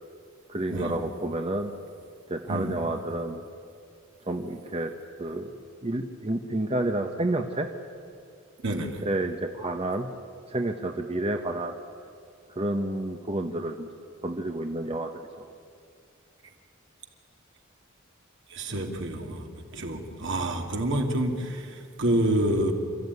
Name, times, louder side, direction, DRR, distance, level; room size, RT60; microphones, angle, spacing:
voice 1, 0.5-1.7 2.3-3.4 4.3-4.9 5.2-5.5 5.8-7.7 9.0-10.1 10.5-11.8 12.6-13.9 14.2-15.1 15.4-15.5, right 1 dB, 30° right, 4 dB, 1.1 m, -29 dB
voice 2, 8.6-9.0 18.5-21.7 22.0-22.7, right 1 dB, 65° right, 3 dB, 2.7 m, -28 dB
28.5 x 14.5 x 9.6 m, 2.4 s
head